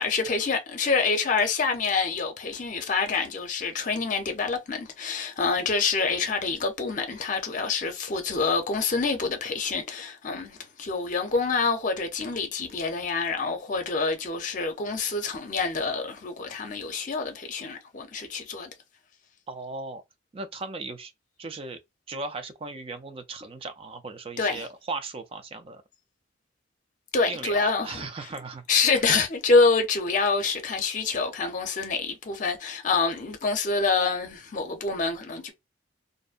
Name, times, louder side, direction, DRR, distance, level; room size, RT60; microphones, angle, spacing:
voice 1, 0.0-18.7 24.4-24.7 27.1-28.0 28.7-35.5, left 4 dB, 45° left, 0.6 m, -26 dB
voice 2, 19.5-20.0 20.3-21.1 21.4-21.8 22.1-25.8 27.3-29.0, right 3 dB, 30° right, 0.4 m, -37 dB
2.6 x 2.1 x 2.4 m
head